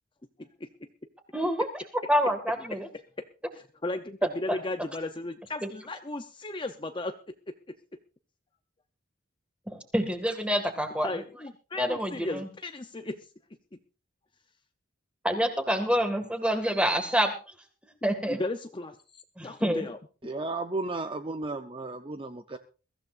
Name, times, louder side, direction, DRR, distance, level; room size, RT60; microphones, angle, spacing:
voice 1, 1.3-1.7 2.1-2.9 4.5-4.6 9.7-11.1 11.8-12.5 15.2-17.3 18.0-18.4 19.4-19.9, equal, 5° right, 6 dB, 1.9 m, -27 dB
voice 2, 3.5-7.1 11.0-13.2 18.3-20.0, left 2 dB, 25° left, 7 dB, 0.6 m, -35 dB
voice 3, 20.2-22.6, right 2 dB, 25° right, 8 dB, 0.6 m, -34 dB
22.0 x 14.5 x 2.5 m, 0.34 s
head